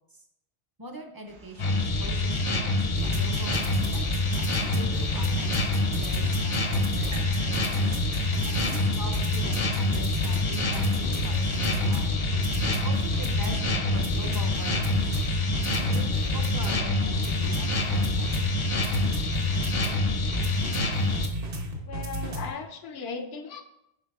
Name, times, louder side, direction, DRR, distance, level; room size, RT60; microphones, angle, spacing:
voice 1, 0.8-4.3 4.7-7.8 8.6-12.2 12.7-15.3 15.9-18.5, right 2 dB, 25° right, 4 dB, 0.5 m, -42 dB
sound 1, 1.3-8.9, left 2 dB, 80° right, 1.1 m, -46 dB
sound 2, 1.6-21.3, left 2 dB, 40° left, 0.5 m, -26 dB
sound 3, 3.0-22.5, right 1 dB, 60° right, 1.1 m, -34 dB
voice 2, 21.9-23.6, left 5 dB, 80° left, 7 dB, 0.9 m, -37 dB
10.5 x 3.9 x 2.3 m, 0.82 s
omnidirectional pair, 1.1 m